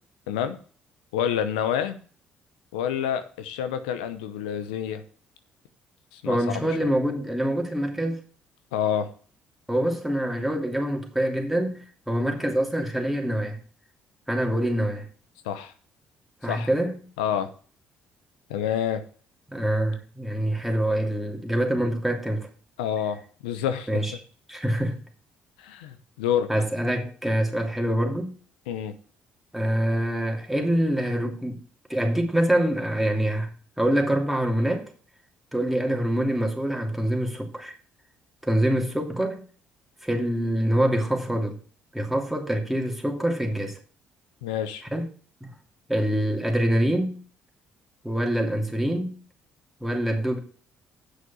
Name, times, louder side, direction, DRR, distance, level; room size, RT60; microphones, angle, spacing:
voice 1, 0.3-0.6 1.1-2.0 2.7-5.0 6.1-6.9 8.7-9.1 15.4-15.7 16.5-16.7 17.2-17.5 18.5-19.0 22.8-24.0 25.6-26.5 28.7-29.0 44.4-44.8, left 9 dB, 90° left, 0.8 m, -28 dB
voice 2, 6.2-8.2 9.7-13.6 14.3-15.1 16.4-17.0 19.5-22.5 23.9-24.1 24.5-25.0 26.5-28.3 29.5-31.6 31.9-33.5 33.8-34.8 35.5-37.7 38.4-39.4 40.0-41.6 41.9-43.8 44.9-45.0 45.4-45.5 45.9-47.2 48.0-49.2 49.8-50.4, right 1 dB, 5° right, 2.8 m, -25 dB
8.2 x 6.1 x 7.1 m
hypercardioid pair, 60°, 4 cm